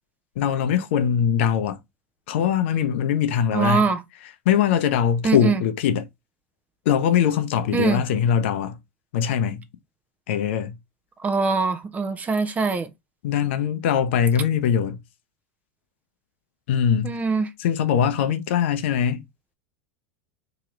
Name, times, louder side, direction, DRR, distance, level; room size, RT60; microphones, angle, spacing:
voice 1, 0.4-1.8 2.3-3.9 4.5-6.0 6.9-8.8 9.1-9.6 10.3-10.8 13.2-15.0 16.7-17.1 17.6-19.2, left 8 dB, 65° left, 0.7 m, -22 dB
voice 2, 3.5-4.0 5.2-5.6 7.7-8.0 11.2-12.9 17.0-17.5, right 4 dB, 20° right, 0.7 m, -22 dB
3.0 x 2.9 x 3.6 m
hypercardioid pair, 90°, 7 cm